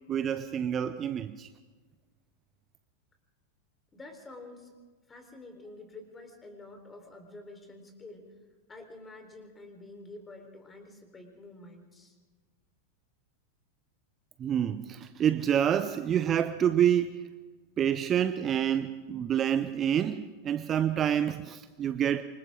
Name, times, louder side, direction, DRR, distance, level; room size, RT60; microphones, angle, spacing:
voice 1, 0.1-1.5 14.4-17.3 17.8-22.2, right 9 dB, 25° right, 12 dB, 0.8 m, -27 dB
voice 2, 3.9-4.7 5.1-8.3 8.7-12.2, left 2 dB, 15° left, 4 dB, 4.2 m, -48 dB
27.5 x 24.5 x 3.8 m, 1.3 s
figure-of-eight pair, 90°, 0 cm